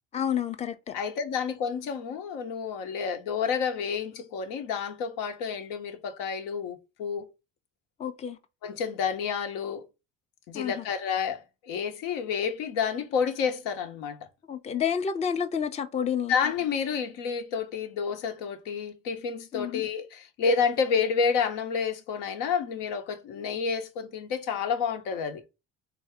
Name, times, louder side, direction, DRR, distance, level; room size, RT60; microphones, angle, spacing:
voice 1, 0.1-0.9 8.0-8.4 10.5-10.8 14.5-16.3 19.5-19.8, left 8 dB, 20° left, 0.5 m, -29 dB
voice 2, 0.9-7.3 8.6-9.9 10.5-14.3 16.3-25.4, left 6 dB, 80° left, 0.8 m, -29 dB
3.4 x 2.7 x 3.3 m
supercardioid pair, 90°, 32 cm